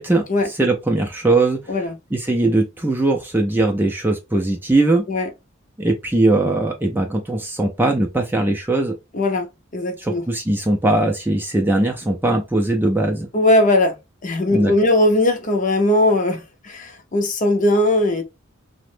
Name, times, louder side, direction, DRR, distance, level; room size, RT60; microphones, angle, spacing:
voice 1, 0.0-1.6 2.1-5.0 5.8-9.0 10.0-13.3 14.5-14.7, right 2 dB, 10° right, 0.4 m, -20 dB
voice 2, 9.1-9.5 9.7-10.2 13.3-13.9 14.2-18.2, left 1 dB, 35° left, 0.5 m, -19 dB
2.9 x 2.0 x 3.1 m
head